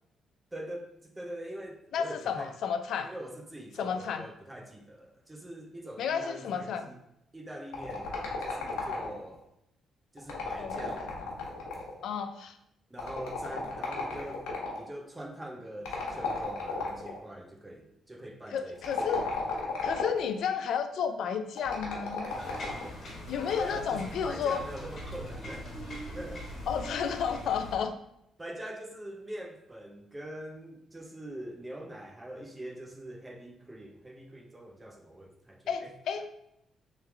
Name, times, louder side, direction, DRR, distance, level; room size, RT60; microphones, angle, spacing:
voice 1, 0.5-2.7 3.0-7.0 7.3-9.4 10.1-11.1 12.9-14.5 14.8-18.8 19.1-19.3 23.6-25.8 26.1-26.4 28.4-35.9, right 1 dB, 15° right, 1 dB, 0.7 m, -43 dB
voice 2, 1.9-3.1 3.8-4.2 6.0-6.9 10.6-10.9 12.0-12.6 18.5-19.2 19.8-22.3 23.3-24.6 26.7-27.9 35.7-36.4, left 7 dB, 70° left, 9 dB, 0.4 m, -32 dB
sound 1, 7.7-9.3 10.2-12.0 13.0-14.8 15.8-17.2 18.7-20.3 21.6-22.9, left 4 dB, 85° left, 0.9 m, -34 dB
sound 2, 22.3-27.8, equal, 45° left, 1.4 m, -41 dB
3.3 x 3.1 x 3.5 m, 0.79 s
cardioid pair, 90°, 0 cm